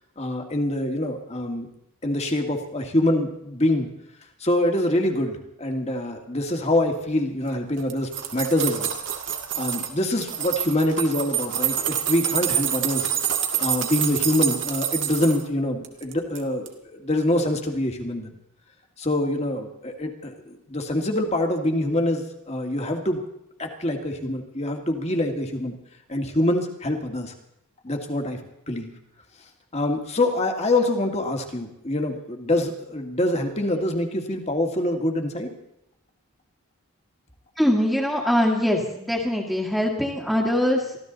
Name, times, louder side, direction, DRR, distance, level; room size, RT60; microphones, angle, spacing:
voice 1, 0.2-1.7 2.0-3.9 4.4-8.9 9.6-13.1 13.6-18.3 19.0-23.2 23.6-25.7 26.1-27.3 27.8-28.4 28.7-28.9 29.7-35.5, left 1 dB, 30° left, 4 dB, 2.0 m, -25 dB
sound 1, 7.8-9.9 10.2-15.4 15.8-16.4 16.7-16.8, right 10 dB, 55° right, 2.0 m, -27 dB
voice 2, 37.6-41.0, left 1 dB, ahead, -6 dB, 1.9 m, -22 dB
24.0 x 14.5 x 4.0 m, 0.81 s
head